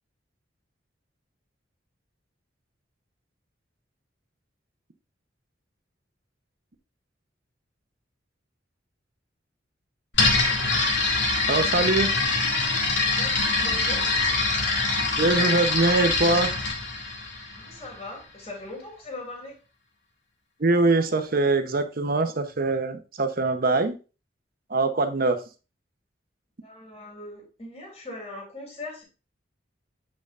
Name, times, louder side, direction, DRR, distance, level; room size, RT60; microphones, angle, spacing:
sound 1, 10.1-17.9, left 3 dB, 75° left, 2.0 m, -24 dB
voice 1, 11.5-12.1 15.2-16.5 20.6-24.0 24.7-25.4, right 3 dB, 55° right, 8 dB, 0.8 m, -23 dB
voice 2, 13.2-14.1 17.5-19.5 26.6-29.0, left 2 dB, 35° left, -1 dB, 2.8 m, -40 dB
7.9 x 5.3 x 2.5 m, 0.32 s
head